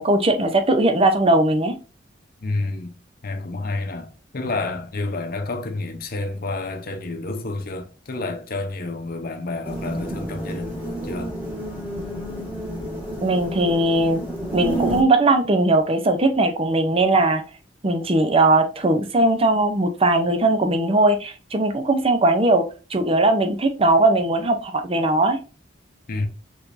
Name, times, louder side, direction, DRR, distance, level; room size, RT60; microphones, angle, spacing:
voice 1, 0.0-1.7 13.2-14.2 14.5-17.4 17.8-22.6 22.9-25.4, right 2 dB, 30° right, 0.6 m, -19 dB
voice 2, 2.4-3.0 3.2-11.4 26.1-26.3, left 2 dB, 55° left, 0.7 m, -29 dB
sound 1, 9.6-15.0, right 1 dB, 10° right, 1.6 m, -30 dB
4.9 x 3.9 x 2.6 m
head